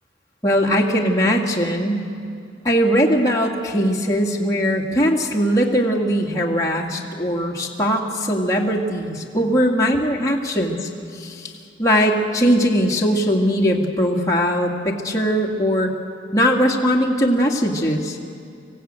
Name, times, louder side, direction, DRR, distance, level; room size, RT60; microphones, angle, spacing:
voice 1, 0.4-2.1 2.6-11.5 11.8-15.9 16.3-18.2, equal, 20° left, -2 dB, 2.0 m, -20 dB
26.0 x 16.0 x 8.8 m, 2.5 s
head